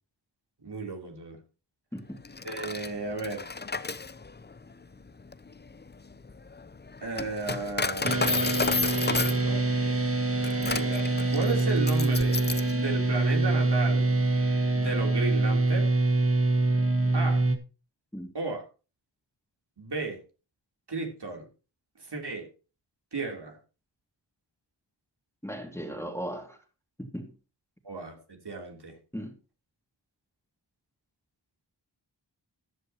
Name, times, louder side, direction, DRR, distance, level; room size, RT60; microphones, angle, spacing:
voice 1, 0.6-1.4 2.4-3.5 7.0-9.6 10.6-14.1 14.7-15.9 17.1-17.4 18.3-18.6 19.8-20.2 20.9-21.5 22.0-22.5 23.1-23.6 27.8-28.1 28.4-29.0, right 3 dB, 65° right, 3.4 m, -34 dB
Coin (dropping), 2.2-12.8, left 4 dB, 25° left, 0.6 m, -32 dB
sound 1, 8.0-17.6, right 2 dB, 30° right, 1.6 m, -25 dB
voice 2, 25.4-26.6 27.0-27.3 29.1-29.3, equal, 5° left, 2.3 m, -37 dB
14.5 x 11.0 x 2.9 m
wide cardioid pair, 95°, 43 cm